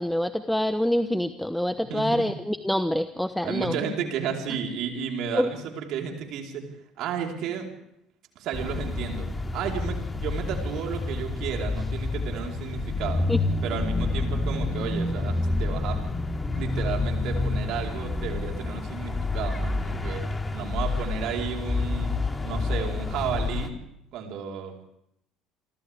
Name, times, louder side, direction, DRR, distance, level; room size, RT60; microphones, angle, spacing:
voice 1, 0.0-3.7 5.3-5.5 13.3-13.4, equal, 5° left, 10 dB, 1.1 m, -26 dB
voice 2, 1.9-2.2 3.4-6.7 7.0-7.7 8.4-9.3 9.5-13.2 13.6-16.0 16.5-22.1 22.4-23.7 24.1-24.9, right 7 dB, 60° right, 1 dB, 4.4 m, -32 dB
sound 1, 8.5-23.7, left 3 dB, 20° left, 2.6 m, -28 dB
28.0 x 25.0 x 3.6 m, 0.77 s
hypercardioid pair, 60°, 0 cm